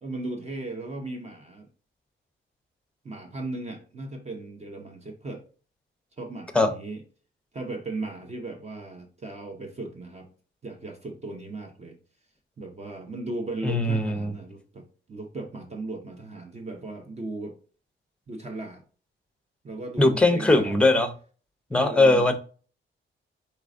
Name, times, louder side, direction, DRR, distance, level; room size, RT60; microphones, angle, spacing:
voice 1, 0.0-1.7 3.0-5.4 6.2-7.0 7.5-10.3 10.6-12.0 12.6-17.6 18.3-18.8 19.6-20.9 21.7-22.3, right 2 dB, 30° right, 0.7 m, -37 dB
voice 2, 13.6-14.3 20.0-21.1 21.7-22.3, left 2 dB, 5° left, 0.6 m, -20 dB
4.6 x 4.1 x 2.5 m
wide cardioid pair, 130°, 21 cm